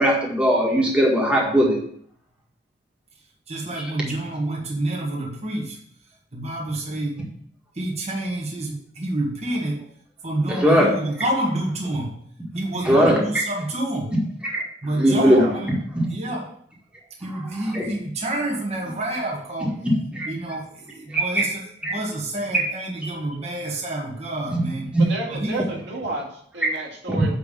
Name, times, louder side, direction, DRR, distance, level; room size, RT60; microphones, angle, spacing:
voice 1, 0.0-1.8 10.5-10.9 12.8-13.2 14.4-14.6 15.0-15.5 17.7-17.9 19.8-20.3 21.1-21.5 21.8-21.9 22.5-22.6 24.5-24.6 27.1-27.2, equal, 5° right, -3 dB, 1.8 m, -19 dB
voice 2, 3.5-5.8 6.3-7.2 7.7-9.8 10.2-12.2 12.5-14.1 14.8-15.7 16.1-16.5 17.2-19.7 20.3-24.9 25.3-25.6, right 1 dB, 35° right, -2 dB, 1.8 m, -28 dB
voice 3, 15.1-15.5 25.0-27.4, right 2 dB, 70° right, -3 dB, 2.3 m, -30 dB
9.3 x 3.5 x 6.8 m, 0.62 s
head